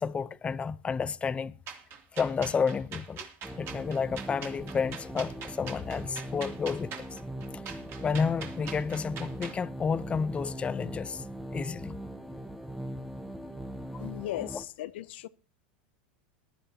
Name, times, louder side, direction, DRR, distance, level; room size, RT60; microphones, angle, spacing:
voice 1, 0.0-1.6 2.1-3.2 3.6-7.2 8.0-11.2 11.5-12.0 13.9-14.0 14.4-14.6, left 5 dB, 20° left, 0.7 m, -31 dB
sound 1, 1.7-9.6, right 7 dB, 45° right, 2.8 m, -43 dB
sound 2, 3.4-14.7, right 1 dB, ahead, 1.0 m, -40 dB
voice 2, 14.0-15.3, left 14 dB, 75° left, 0.7 m, -37 dB
21.5 x 11.0 x 2.9 m
supercardioid pair, 120°, 6 cm